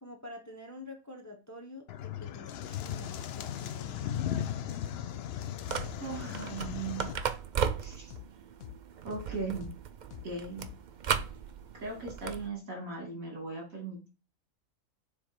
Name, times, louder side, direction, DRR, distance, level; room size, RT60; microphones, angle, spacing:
voice 1, 0.0-4.1, left 2 dB, 15° left, 2 dB, 1.0 m, -48 dB
sound 1, 1.9-7.1, left 10 dB, 65° left, 0.7 m, -37 dB
sound 2, 5.6-12.5, right 7 dB, 60° right, 0.5 m, -36 dB
voice 2, 6.0-7.3 7.8-8.1 9.0-9.7 10.2-10.6 11.7-14.1, right 3 dB, 75° right, 0 dB, 3.1 m, -38 dB
sound 3, 6.1-6.3 6.6-6.8 7.1-7.3 7.6-7.8 8.1-8.3 8.6-8.8 9.1-9.3 9.6-9.8 10.1-10.3 10.6-10.8 11.1-11.3, left 13 dB, 90° left, 1.0 m, -45 dB
7.1 x 3.3 x 4.5 m, 0.31 s
omnidirectional pair, 1.4 m